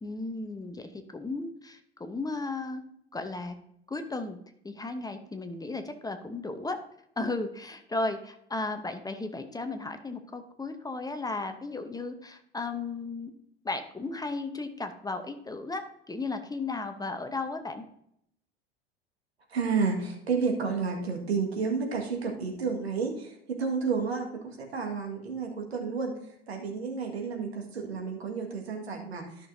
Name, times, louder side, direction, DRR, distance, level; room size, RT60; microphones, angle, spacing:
voice 1, 0.0-2.8 3.1-3.6 3.9-4.4 4.6-6.8 7.2-13.3 13.6-17.8, left 3 dB, 10° left, 8 dB, 0.9 m, -35 dB
voice 2, 19.5-26.1 26.5-29.5, right 5 dB, 80° right, 3 dB, 1.8 m, -31 dB
13.5 x 6.1 x 2.7 m, 0.74 s
figure-of-eight pair, 70°, 31 cm